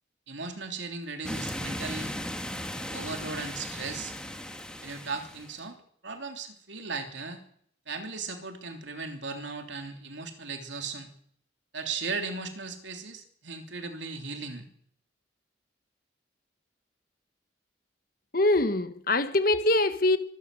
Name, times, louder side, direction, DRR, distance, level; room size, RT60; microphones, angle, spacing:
voice 1, 0.3-2.1 2.9-4.2 4.8-5.8 6.0-7.4 7.9-11.1 11.7-14.7, right 4 dB, 70° right, 3.3 m, -37 dB
sound 1, 1.2-5.6, left 1 dB, 5° left, 1.8 m, -37 dB
voice 2, 18.3-20.2, left 2 dB, 50° left, 1.4 m, -23 dB
25.0 x 13.5 x 7.7 m
head